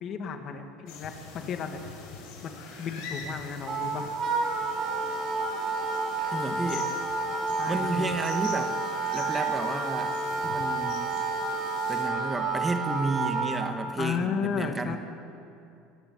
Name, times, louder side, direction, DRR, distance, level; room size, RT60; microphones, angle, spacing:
voice 1, 0.0-1.8 2.4-4.1 7.6-8.1 14.0-15.0, left 6 dB, 50° left, 5 dB, 2.2 m, -33 dB
sound 1, 0.9-12.1, left 4 dB, 65° left, 6.1 m, -44 dB
Wind instrument woodwind instrument, 3.7-13.6, right 3 dB, 40° right, 4.7 m, -30 dB
voice 2, 6.3-6.9 7.7-8.7 9.1-10.2 10.4-11.1 11.9-15.0, right 2 dB, 15° right, 6 dB, 1.9 m, -32 dB
24.5 x 11.0 x 9.8 m, 2.6 s
supercardioid pair, 95°, 0 cm